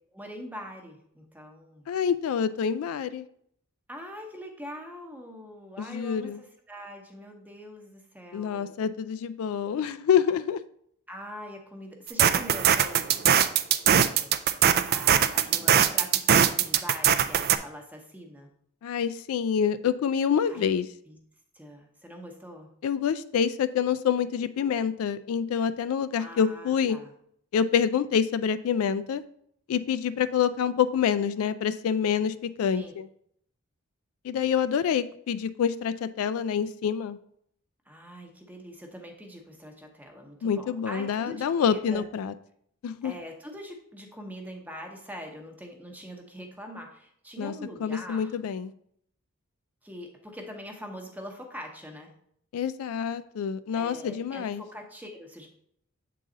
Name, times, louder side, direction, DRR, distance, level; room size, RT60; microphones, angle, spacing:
voice 1, 0.1-1.8 3.9-8.8 11.1-13.5 13.9-14.3 14.9-18.5 20.5-20.6 21.1-21.2 21.5-22.7 26.2-27.1 32.7-33.0 37.9-42.1 43.0-48.3 49.8-52.1 53.7-55.5, equal, 5° right, 2 dB, 0.9 m, -43 dB
voice 2, 1.9-3.3 5.8-6.4 8.3-10.6 18.8-20.9 22.8-27.0 27.5-29.2 29.7-33.1 34.2-37.2 40.4-42.3 42.8-43.1 47.4-47.5 47.8-48.7 52.5-54.6, left 7 dB, 70° left, 13 dB, 0.3 m, -27 dB
sound 1, 12.1-17.6, right 9 dB, 45° right, 0.3 m, -21 dB
7.4 x 3.9 x 3.8 m, 0.68 s
head